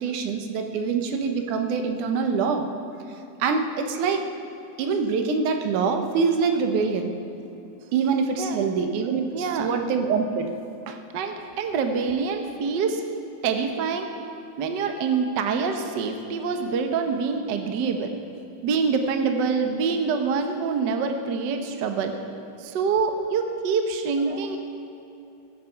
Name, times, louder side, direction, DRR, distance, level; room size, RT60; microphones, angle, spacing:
voice 1, 0.0-2.7 3.4-4.3 4.8-7.1 7.9-10.5 10.9-11.0 24.2-24.6, right 5 dB, 90° right, 5 dB, 2.6 m, -25 dB
voice 2, 9.3-9.7 11.1-13.0 13.4-14.1 14.6-18.1 18.6-22.1 22.6-24.6, right 5 dB, 65° right, 5 dB, 1.1 m, -25 dB
20.5 x 7.6 x 5.8 m, 2.9 s
omnidirectional pair, 3.4 m